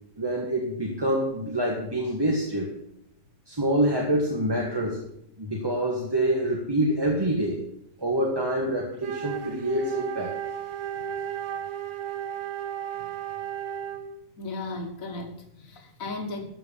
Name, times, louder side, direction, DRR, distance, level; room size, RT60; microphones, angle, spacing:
voice 1, 0.2-2.7 3.5-5.0 5.4-7.6 8.0-10.3, right 1 dB, 15° right, -2 dB, 1.5 m, -26 dB
Wind instrument woodwind instrument, 8.9-14.2, right 9 dB, 65° right, 1.2 m, -34 dB
voice 2, 14.4-16.4, left 2 dB, 60° left, 5 dB, 1.9 m, -36 dB
13.5 x 5.5 x 7.0 m, 0.76 s
omnidirectional pair, 1.6 m